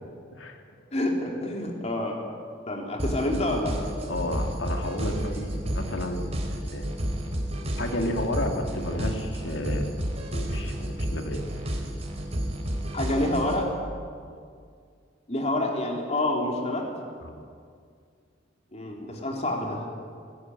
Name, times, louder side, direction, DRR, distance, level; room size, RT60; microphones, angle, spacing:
voice 1, 0.9-2.2 2.7-3.8 12.9-13.7 15.3-16.9 18.7-19.8, left 1 dB, 35° left, 1 dB, 3.7 m, -27 dB
sound 1, 3.0-13.7, equal, 35° right, 3.6 m, -31 dB
voice 2, 4.1-6.8 7.8-9.9 10.3-11.4 14.3-14.4 17.2-17.4, left 1 dB, 75° left, 3 dB, 2.7 m, -32 dB
20.5 x 17.0 x 9.7 m, 2.2 s
head